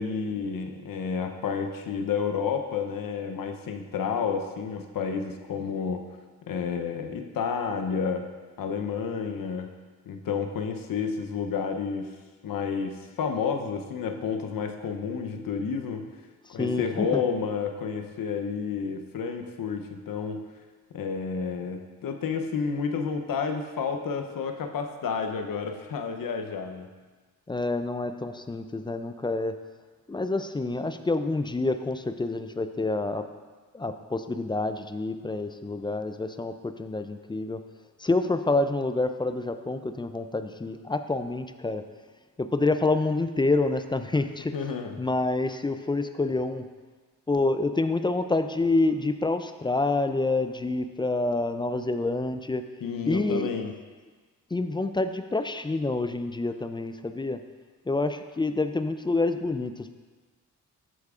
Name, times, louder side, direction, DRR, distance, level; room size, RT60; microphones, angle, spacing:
voice 1, 0.0-6.0 6.5-8.3 8.6-9.7 10.1-12.2 12.4-16.1 16.5-20.4 20.9-26.9 44.5-45.0 52.8-53.7, left 6 dB, 60° left, 5 dB, 0.8 m, -30 dB
voice 2, 16.6-17.2 27.5-29.5 30.1-33.3 33.7-37.6 38.0-41.8 42.4-44.5 45.0-46.7 47.3-52.6 53.1-53.5 54.5-57.4 57.9-59.9, left 2 dB, 15° left, 9 dB, 0.3 m, -27 dB
13.0 x 4.6 x 2.4 m, 1.4 s
cardioid pair, 60°, 38 cm